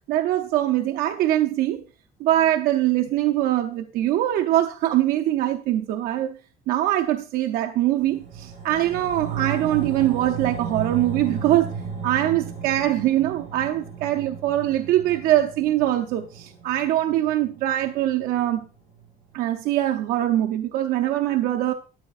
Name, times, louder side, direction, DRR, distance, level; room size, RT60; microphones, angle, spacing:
voice 1, 0.1-1.8 2.2-6.4 6.7-11.7 12.0-18.6 19.3-21.7, right 13 dB, 70° right, 0.7 m, -23 dB
sound 1, 8.0-18.6 19.0-19.1, right 6 dB, 50° right, 5.9 m, -35 dB
12.5 x 9.6 x 2.5 m
cardioid pair, 175°, 16 cm